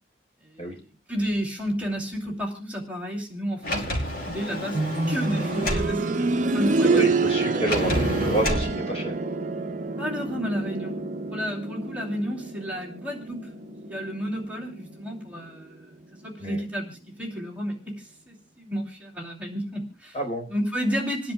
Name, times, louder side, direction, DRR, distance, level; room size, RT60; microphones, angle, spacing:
voice 1, 1.1-4.8 5.1-6.2 6.5-7.1 10.0-10.9 11.3-13.4 13.8-15.9 16.2-20.2 20.5-21.3, equal, 10° right, -2 dB, 3.0 m, -31 dB
Sliding door, 3.6-5.9 7.7-8.7, left 1 dB, 55° left, 2.8 m, -29 dB
sound 1, 4.7-15.5 15.8-15.9 16.8-16.9, right 3 dB, 45° right, 0.6 m, -27 dB
voice 2, 6.8-9.1 16.4-16.6 20.1-20.5, right 1 dB, 35° left, 1 dB, 4.4 m, -29 dB
28.0 x 10.0 x 2.3 m, 0.32 s
head